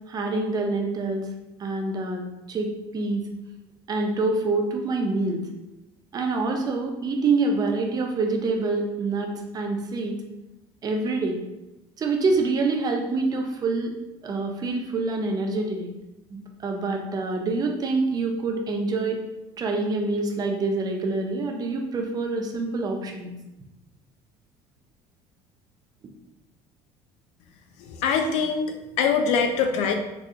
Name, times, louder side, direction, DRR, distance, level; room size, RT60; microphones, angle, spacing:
voice 1, 0.1-1.3 1.6-2.2 2.5-3.2 3.9-5.4 6.1-10.1 10.8-11.4 12.0-13.9 14.2-15.9 16.3-19.2 19.6-23.3, right 3 dB, 35° right, 2 dB, 0.6 m, -26 dB
voice 2, 27.9-29.9, left 5 dB, 75° left, 4 dB, 0.5 m, -23 dB
4.0 x 2.3 x 2.7 m, 0.97 s
supercardioid pair, 105°, 12 cm